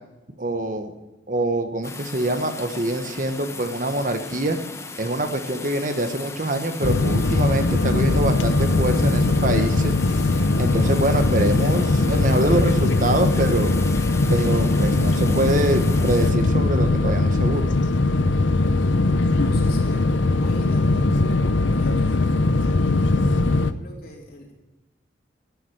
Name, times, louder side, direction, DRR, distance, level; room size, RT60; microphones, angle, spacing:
voice 1, 0.4-0.9 1.3-4.6 5.0-9.9 10.6-13.7 14.3-17.7, right 1 dB, 45° right, 7 dB, 1.2 m, -24 dB
rain with thunder, 1.8-16.3, left 2 dB, 15° left, 0.9 m, -35 dB
sound 1, 6.8-23.7, left 2 dB, 80° left, 0.8 m, -20 dB
voice 2, 19.4-21.3 21.7-24.5, left 1 dB, 50° left, -1 dB, 4.2 m, -41 dB
11.5 x 9.6 x 9.3 m, 1.0 s
head